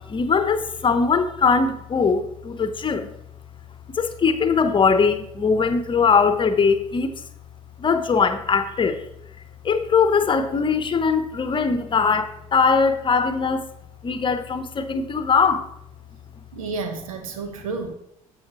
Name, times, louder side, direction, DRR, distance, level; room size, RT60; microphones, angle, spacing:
voice 1, 0.0-3.1 4.0-7.1 7.8-9.0 9.6-13.7 14.0-15.6, left 5 dB, 30° left, 10 dB, 0.9 m, -21 dB
voice 2, 16.5-17.9, right 4 dB, 75° right, 7 dB, 1.0 m, -31 dB
14.5 x 5.6 x 3.0 m, 0.76 s
figure-of-eight pair, 55°, 18 cm